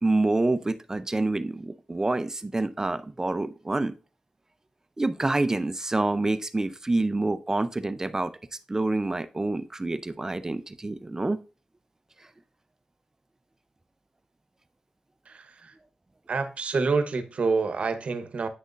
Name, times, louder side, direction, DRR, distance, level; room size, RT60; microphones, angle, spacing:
voice 1, 0.0-3.9 5.0-8.3 8.7-11.4, right 2 dB, 20° right, 0.6 m, -27 dB
voice 2, 15.2-15.8 16.3-18.5, right 4 dB, 60° right, 1.0 m, -27 dB
9.3 x 6.4 x 2.5 m
cardioid pair, 80°, 2 cm